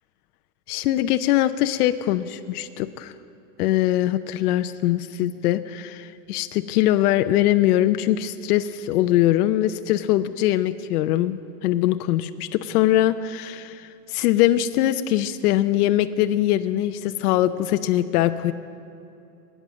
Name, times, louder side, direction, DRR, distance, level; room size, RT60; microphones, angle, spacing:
voice 1, 0.7-3.1 3.6-18.5, left 13 dB, 70° left, 10 dB, 0.7 m, -22 dB
22.0 x 9.3 x 6.2 m, 2.8 s
supercardioid pair, 175°, 47 cm